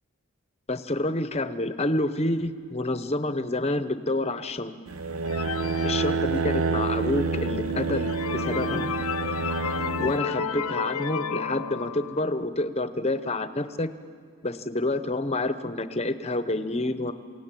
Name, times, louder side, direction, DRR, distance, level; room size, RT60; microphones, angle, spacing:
voice 1, 0.7-4.7 5.8-8.9 10.0-13.9 14.4-17.1, left 2 dB, 30° left, 11 dB, 0.8 m, -28 dB
sound 1, 4.9-10.2, right 4 dB, 70° right, 0.7 m, -28 dB
sound 2, 5.3-6.9 7.4-7.5 7.9-12.4, left 6 dB, 80° left, 0.8 m, -32 dB
28.0 x 17.0 x 9.0 m, 2.1 s
head